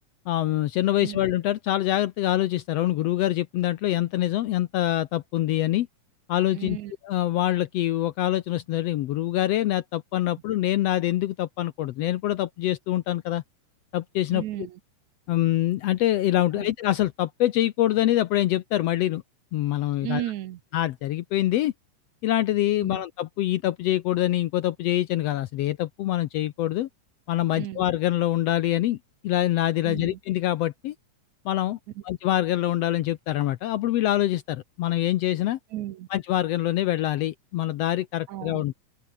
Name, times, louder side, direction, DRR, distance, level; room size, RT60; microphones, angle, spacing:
voice 1, 0.3-5.9 6.3-6.8 7.0-13.4 13.9-14.4 15.3-19.2 19.5-20.2 20.7-21.7 22.2-26.9 27.3-29.0 29.2-30.9 31.4-31.8 32.0-35.6 36.1-38.7, left 14 dB, 75° left, 1.6 m, -25 dB
voice 2, 6.5-6.9 14.3-14.8 16.5-16.7 20.0-20.6 22.8-23.0 27.5-27.8 29.8-30.2 32.0-32.1 35.7-36.1 38.3-38.6, right 14 dB, 75° right, 2.2 m, -34 dB
open air
omnidirectional pair, 3.5 m